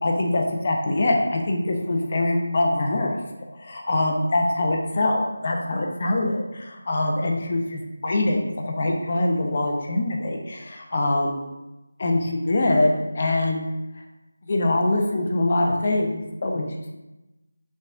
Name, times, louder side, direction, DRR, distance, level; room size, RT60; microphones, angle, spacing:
voice 1, 0.0-3.1 3.6-11.4 12.0-13.7 14.5-16.7, left 2 dB, 35° left, 1 dB, 0.6 m, -23 dB
5.2 x 3.5 x 2.5 m, 1.0 s
figure-of-eight pair, 170°, 0 cm